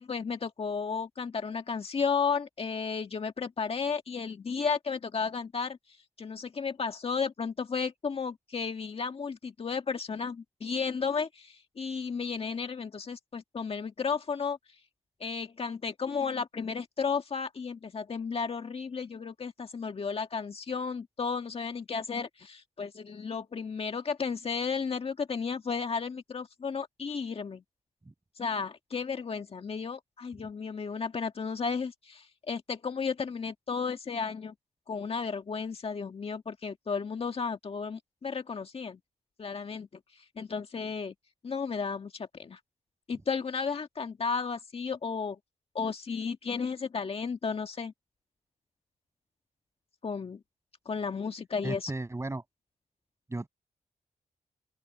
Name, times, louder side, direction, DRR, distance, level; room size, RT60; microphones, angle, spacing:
voice 1, 0.0-5.8 6.2-14.6 15.2-27.6 28.4-34.5 34.9-39.0 39.4-39.9 40.4-41.1 41.4-42.6 43.1-45.4 45.8-47.9 50.0-50.4 50.9-51.9, left 5 dB, 50° left, 1.8 m, -33 dB
voice 2, 51.6-52.4 53.3-53.5, right 2 dB, 20° right, 6.9 m, -35 dB
open air
cardioid pair, 90°, 13 cm